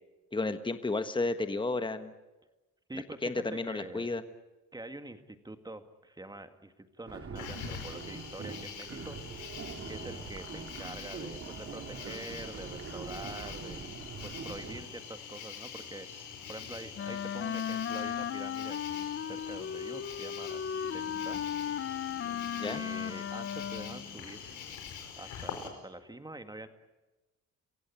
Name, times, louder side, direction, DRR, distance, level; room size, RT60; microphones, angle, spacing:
voice 1, 0.3-2.1 3.2-4.2 22.5-22.8, left 3 dB, 15° left, 9 dB, 1.4 m, -32 dB
voice 2, 2.9-4.1 4.7-9.6 9.9-13.8 14.2-21.4 22.6-24.6 25.2-26.7, right 2 dB, 15° right, 8 dB, 2.0 m, -46 dB
sound 1, 7.1-14.8, right 4 dB, 50° right, 3.7 m, -43 dB
Cricket, 7.3-25.7, left 7 dB, 80° left, 4.8 m, -45 dB
Wind instrument woodwind instrument, 17.0-24.1, left 8 dB, 45° left, 0.7 m, -36 dB
27.5 x 16.0 x 9.9 m, 1.1 s
cardioid pair, 90°, 30 cm